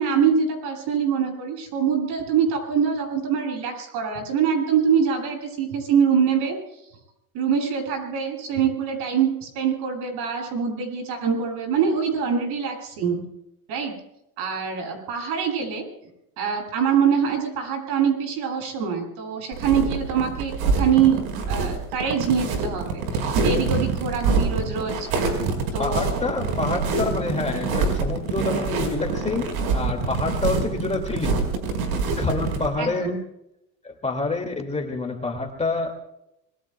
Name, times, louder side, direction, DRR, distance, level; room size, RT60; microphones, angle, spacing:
voice 1, 0.0-6.6 7.3-13.2 13.7-13.9 14.4-15.8 16.4-25.1 25.7-26.2 32.8-33.2, right 7 dB, 60° right, 7.9 m, -24 dB
sound 1, 19.5-32.7, right 4 dB, 80° right, 5.0 m, -25 dB
voice 2, 25.8-31.5 31.8-31.9 32.2-33.1 33.8-35.9, left 3 dB, 15° left, 2.3 m, -27 dB
26.0 x 22.0 x 2.3 m
supercardioid pair, 115°, 42 cm